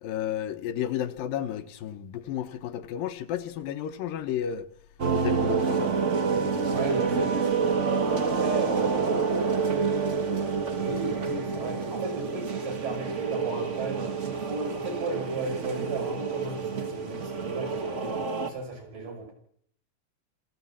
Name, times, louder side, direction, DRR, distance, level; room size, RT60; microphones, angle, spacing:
voice 1, 0.0-4.7 5.1-6.0, left 10 dB, 85° left, 2.7 m, -32 dB
sound 1, 5.0-18.5, right 5 dB, 90° right, 0.6 m, -28 dB
voice 2, 6.7-9.2 10.8-19.3, right 3 dB, 75° right, 7.2 m, -35 dB
26.5 x 15.0 x 7.3 m
omnidirectional pair, 3.9 m